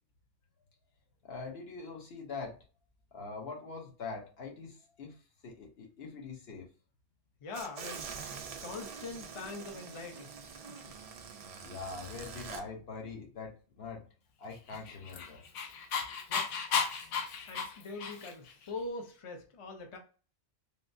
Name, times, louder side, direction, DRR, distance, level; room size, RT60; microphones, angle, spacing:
voice 1, 1.2-2.6 3.1-5.2 5.4-6.7 11.6-14.0 14.4-15.4, left 4 dB, 60° left, 1 dB, 1.0 m, -43 dB
voice 2, 7.4-8.0 8.6-10.9 16.3-16.4 16.8-16.9 17.5-20.0, left 3 dB, 40° left, 3 dB, 0.4 m, -43 dB
sound 1, 7.5-12.6, right 6 dB, 80° right, 0.3 m, -45 dB
Dog, 14.7-18.5, left 6 dB, 85° left, 1.0 m, -34 dB
3.5 x 2.6 x 2.5 m, 0.37 s
omnidirectional pair, 1.2 m